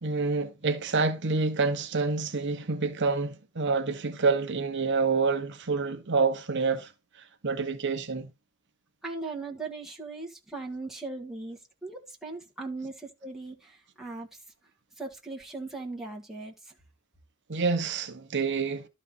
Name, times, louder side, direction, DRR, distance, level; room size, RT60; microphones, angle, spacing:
voice 1, 0.0-8.3 17.5-18.9, right 4 dB, 55° right, 1.0 m, -28 dB
voice 2, 9.0-14.3 15.0-16.7, right 3 dB, ahead, 1.7 m, -39 dB
12.5 x 4.3 x 4.0 m
head